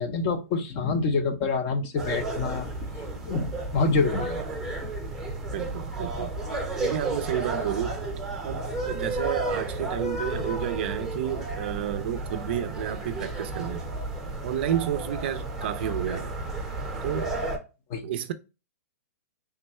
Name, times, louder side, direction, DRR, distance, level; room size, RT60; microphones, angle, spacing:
voice 1, 0.0-2.7 3.2-4.4 17.9-18.0, left 4 dB, 30° left, 0.6 m, -26 dB
sound 1, 2.0-17.6, right 2 dB, 5° right, 0.8 m, -32 dB
voice 2, 5.5-6.3 6.8-8.0 8.4-13.9 14.4-16.3 17.0-17.3 18.0-18.3, right 10 dB, 45° right, 0.4 m, -31 dB
3.5 x 2.3 x 4.1 m
hypercardioid pair, 165°, 8 cm